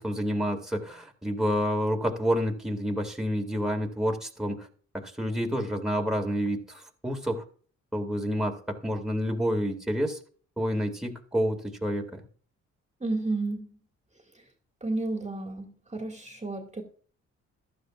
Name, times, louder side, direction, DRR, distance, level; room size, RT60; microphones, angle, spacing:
voice 1, 0.0-4.7 4.9-7.4 7.9-10.2 10.6-12.2, equal, ahead, 2.5 m, -29 dB
voice 2, 13.0-13.8 14.8-16.8, right 2 dB, 20° right, 2.3 m, -32 dB
14.5 x 12.0 x 2.5 m
cardioid pair, 70°, 31 cm